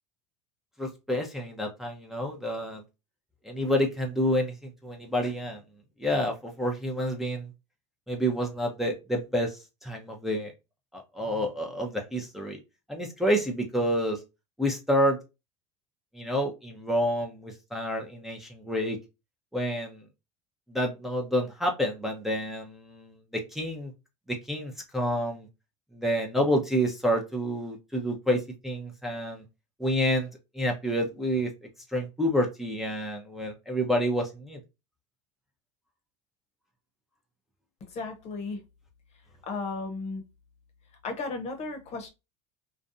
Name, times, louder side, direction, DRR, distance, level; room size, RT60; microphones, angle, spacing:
voice 1, 0.8-2.8 3.4-5.6 6.0-7.5 8.1-10.5 10.9-12.6 12.9-14.2 14.6-15.2 16.1-19.0 19.5-20.0 20.7-23.9 24.3-25.5 25.9-29.4 29.8-30.3 30.5-31.5 31.9-34.6, equal, ahead, 0.6 m, -28 dB
voice 2, 37.9-38.6 39.4-40.2 41.0-42.1, left 3 dB, 45° left, 0.8 m, -34 dB
2.5 x 2.2 x 2.5 m
hypercardioid pair, 80°, 15 cm